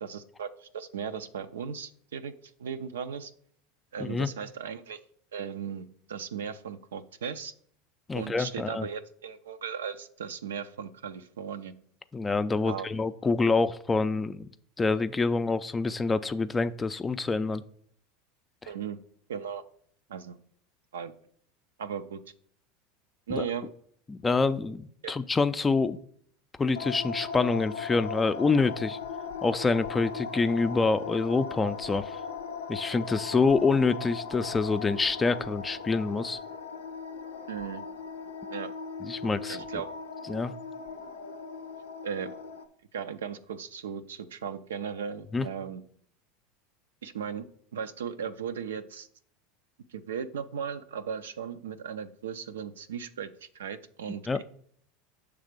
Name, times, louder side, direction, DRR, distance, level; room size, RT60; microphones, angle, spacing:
voice 1, 0.0-2.3 2.6-3.3 3.9-5.0 5.3-7.5 8.1-11.7 12.6-12.9 18.7-19.0 19.3-19.6 20.1-20.4 20.9-21.1 21.8-22.2 23.3-23.7 25.0-25.2 37.5-37.8 38.5-38.7 39.5-39.9 42.0-42.3 42.9-45.8 47.0-47.5 47.7-49.1 49.9-54.4, right 7 dB, 85° right, 10 dB, 0.4 m, -37 dB
voice 2, 8.1-8.9 12.1-14.5 14.8-17.6 23.3-23.4 24.1-26.0 26.6-29.0 29.4-32.2 32.7-36.4 39.0-39.6 40.3-40.5 45.3-45.5 54.3-54.4, left 4 dB, 20° left, 12 dB, 0.4 m, -26 dB
sound 1, 26.7-42.6, left 5 dB, 85° left, 0.5 m, -38 dB
6.4 x 3.4 x 5.1 m, 0.63 s
hypercardioid pair, 95°, 0 cm